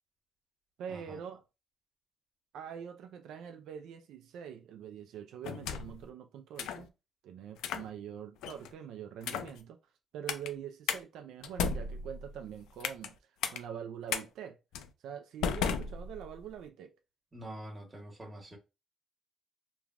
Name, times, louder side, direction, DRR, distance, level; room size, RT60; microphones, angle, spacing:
voice 1, 0.8-1.4 2.5-6.9 7.2-9.8 10.1-13.2 13.5-14.6 15.0-16.9, right 8 dB, 85° right, 0.3 m, -44 dB
sound 1, 5.4-6.0 6.6-6.9 7.6-7.9 8.4-8.7 9.2-9.6 10.3-10.5 10.9-11.0 11.4-13.1 13.4-13.6 14.1-14.2 14.7-14.9 15.4-16.5, left 6 dB, 90° left, 0.3 m, -35 dB
voice 2, 17.3-18.6, right 1 dB, 20° right, 1.1 m, -45 dB
3.2 x 2.1 x 2.4 m
cardioid pair, 90°, 0 cm